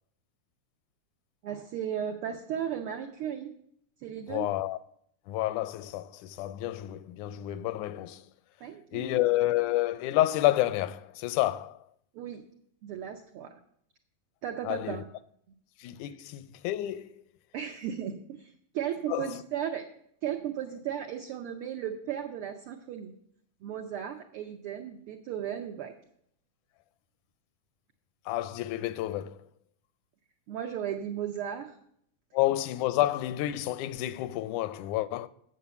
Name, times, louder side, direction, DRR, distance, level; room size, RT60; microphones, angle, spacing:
voice 1, 1.4-3.5 4.0-4.5 8.6-9.2 12.1-12.4 12.8-13.6 14.4-15.1 16.0-16.1 17.5-19.8 20.2-23.1 23.6-25.9 30.5-31.8, right 9 dB, 85° right, 1.2 m, -35 dB
voice 2, 4.3-4.8 5.3-8.2 8.9-11.8 14.6-15.0 15.8-17.2 19.1-19.4 28.3-29.4 32.3-35.3, left 15 dB, 85° left, 2.0 m, -29 dB
8.3 x 7.5 x 6.9 m
omnidirectional pair, 3.4 m